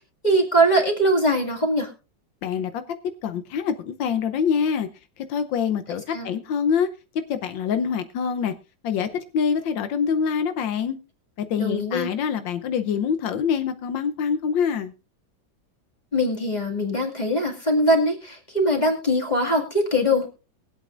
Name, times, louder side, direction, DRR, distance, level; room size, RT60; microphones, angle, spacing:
voice 1, 0.2-1.9 6.1-6.3 11.6-12.1 16.1-20.3, equal, 20° left, 0 dB, 2.2 m, -21 dB
voice 2, 3.2-4.9 5.2-6.9 7.3-8.5 8.8-11.0 11.4-14.9, left 7 dB, 85° left, 10 dB, 1.5 m, -25 dB
22.0 x 8.2 x 2.5 m, 0.32 s
omnidirectional pair, 2.0 m